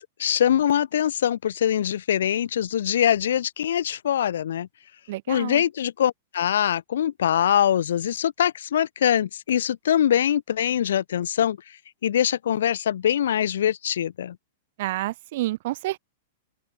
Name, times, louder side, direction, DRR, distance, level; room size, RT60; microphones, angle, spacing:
voice 1, 0.0-4.7 5.3-11.6 12.0-14.4, left 10 dB, 85° left, 0.4 m, -23 dB
voice 2, 5.1-5.6 14.8-16.0, right 17 dB, 45° right, 0.7 m, -29 dB
open air
supercardioid pair, 180°, 0 cm